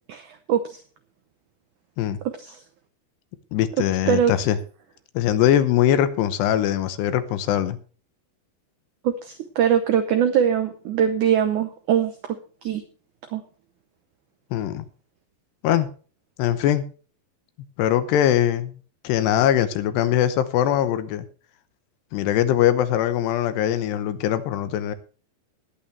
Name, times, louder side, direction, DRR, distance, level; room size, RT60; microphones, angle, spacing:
voice 1, 0.1-0.8 2.3-2.6 3.8-4.4 9.0-12.4 12.6-12.8 13.3-13.4, right 8 dB, 85° right, 8 dB, 1.7 m, -22 dB
voice 2, 3.5-4.6 5.1-7.8 14.5-14.8 15.6-15.9 16.4-16.8 17.8-18.8 19.0-21.3 22.1-25.0, left 11 dB, 80° left, 12 dB, 3.1 m, -21 dB
20.5 x 8.6 x 3.3 m, 0.39 s
omnidirectional pair, 4.9 m